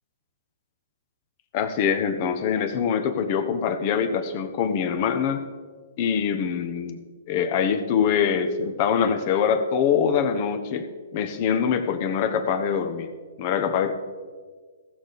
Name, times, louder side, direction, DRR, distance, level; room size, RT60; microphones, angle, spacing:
voice 1, 1.5-5.4 6.0-7.0 7.3-10.9 11.1-13.1 13.4-13.9, left 7 dB, 40° left, 9 dB, 1.1 m, -24 dB
15.5 x 6.7 x 4.0 m, 1.5 s
hypercardioid pair, 135°, 0 cm